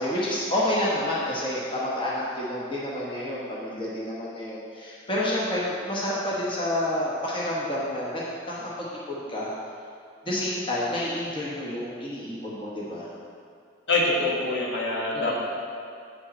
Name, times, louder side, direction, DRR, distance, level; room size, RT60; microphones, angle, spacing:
voice 1, 0.0-9.5 10.3-13.1 15.1-15.4, left 1 dB, 25° left, -6 dB, 1.0 m, -29 dB
voice 2, 13.9-15.4, left 2 dB, 60° left, -3 dB, 1.4 m, -25 dB
8.3 x 6.4 x 4.2 m, 2.3 s
head